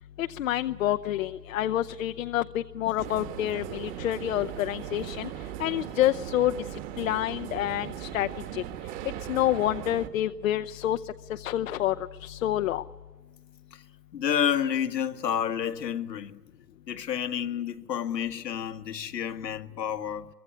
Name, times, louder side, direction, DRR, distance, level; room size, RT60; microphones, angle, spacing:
voice 1, 0.2-5.3 5.6-8.6 9.3-11.0 11.3-12.8, left 13 dB, 55° left, 0.8 m, -28 dB
sound 1, 3.0-10.1, right 11 dB, 35° right, 1.8 m, -38 dB
voice 2, 14.1-16.4 16.9-20.3, left 9 dB, 80° left, 1.7 m, -30 dB
24.0 x 22.5 x 9.7 m
hypercardioid pair, 135°, 49 cm